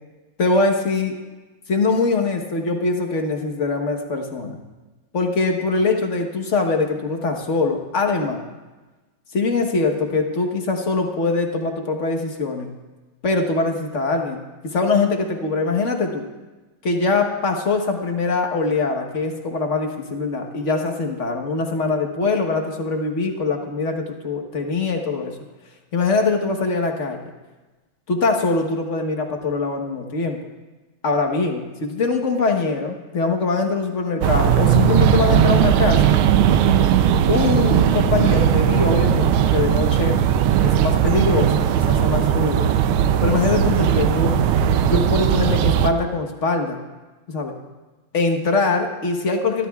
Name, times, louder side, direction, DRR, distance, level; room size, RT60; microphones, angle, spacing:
voice 1, 0.4-1.1 1.7-4.6 5.1-8.4 9.3-12.7 13.2-14.4 14.6-16.2 16.8-25.3 25.9-27.2 28.1-30.4 31.0-36.1 37.3-40.2 40.6-42.7 43.2-44.4 44.8-46.8 47.3-47.6 48.1-49.7, left 3 dB, 40° left, 3 dB, 1.2 m, -22 dB
sound 1, 34.2-45.9, right 9 dB, 85° right, 1.5 m, -18 dB
24.5 x 12.5 x 2.4 m, 1.2 s
omnidirectional pair, 2.3 m